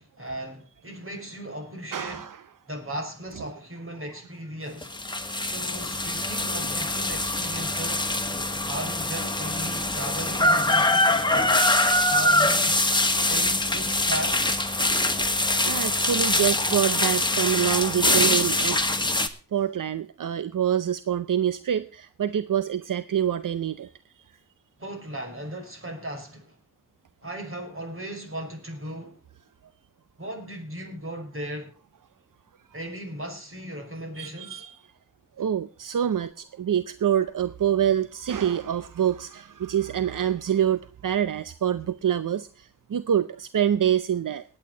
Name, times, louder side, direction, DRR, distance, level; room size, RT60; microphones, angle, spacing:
voice 1, 0.0-2.3 2.7-5.0 5.4-8.1 8.7-11.7 12.1-12.8 13.3-14.4 24.8-26.6 27.2-29.2 30.2-31.8 32.7-34.6, right 1 dB, 40° right, 5.6 m, -36 dB
voice 2, 1.9-2.4 13.3-13.5 15.6-18.8 19.5-23.9 34.2-34.8 35.4-44.4, right 9 dB, 80° right, 0.7 m, -26 dB
sound 1, 4.8-19.3, left 1 dB, 15° left, 1.6 m, -24 dB
19.0 x 8.9 x 3.9 m
wide cardioid pair, 70°, 31 cm